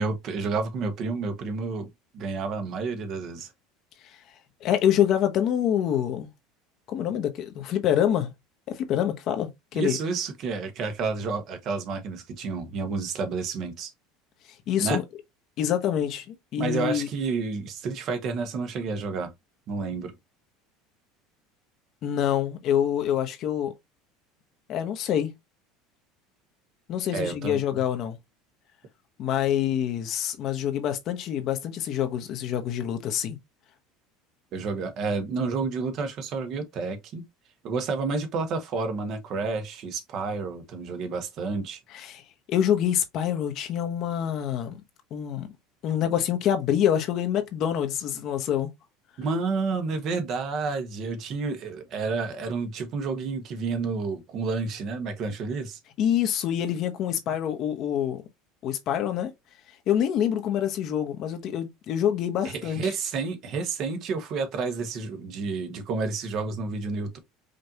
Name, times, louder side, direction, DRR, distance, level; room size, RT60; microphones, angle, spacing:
voice 1, 0.0-3.5 9.7-13.9 14.8-15.0 16.6-19.3 19.7-20.1 27.1-27.8 34.5-37.2 37.6-41.8 49.2-55.8 62.4-67.2, right 4 dB, 50° right, 1.2 m, -30 dB
voice 2, 4.6-6.3 6.9-8.3 8.7-10.0 14.7-15.0 15.6-17.1 22.0-23.7 24.7-25.3 26.9-28.2 29.2-33.4 41.9-42.2 42.5-44.8 45.1-45.5 45.8-48.7 56.0-58.2 58.6-59.3 59.9-62.8, left 10 dB, 55° left, 1.0 m, -26 dB
5.2 x 2.6 x 2.8 m
supercardioid pair, 100°, 0 cm